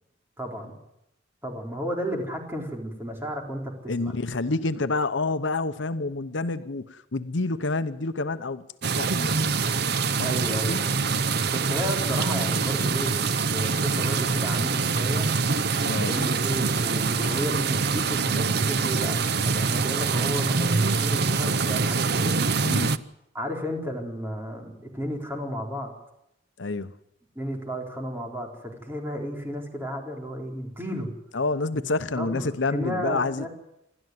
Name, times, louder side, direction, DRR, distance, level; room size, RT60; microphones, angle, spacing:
voice 1, 0.4-0.8 1.4-4.1 10.2-11.0 11.5-13.1 13.5-15.3 16.0-22.4 23.3-25.9 27.4-31.1 31.7-31.8 32.2-33.5, equal, 10° right, 1 dB, 4.2 m, -33 dB
voice 2, 3.9-9.6 10.1-10.8 15.9-16.1 22.7-23.0 26.6-26.9 31.3-33.5, left 3 dB, 75° left, 11 dB, 0.9 m, -28 dB
sound 1, 8.8-23.0, right 4 dB, 55° right, 0.8 m, -24 dB
27.5 x 13.0 x 9.5 m, 0.85 s
head